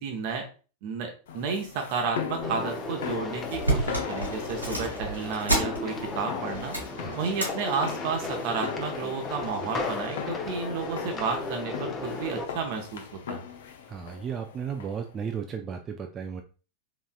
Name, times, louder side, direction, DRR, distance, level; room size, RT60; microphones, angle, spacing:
voice 1, 0.0-0.4 0.8-6.7 7.2-13.4, right 5 dB, 45° right, 3 dB, 0.7 m, -32 dB
sound 1, 1.3-15.2, left 7 dB, 60° left, 0.6 m, -39 dB
sound 2, 2.4-12.5, left 3 dB, 20° left, 0.7 m, -35 dB
sound 3, 3.0-3.1 3.4-6.2 6.5-7.5 7.9-8.2 9.0-9.5 10.0-10.1, right 2 dB, 85° right, 1.7 m, -30 dB
voice 2, 13.9-16.4, right 7 dB, 25° right, 5 dB, 0.4 m, -34 dB
3.9 x 3.5 x 2.3 m, 0.36 s
figure-of-eight pair, 90°, 0 cm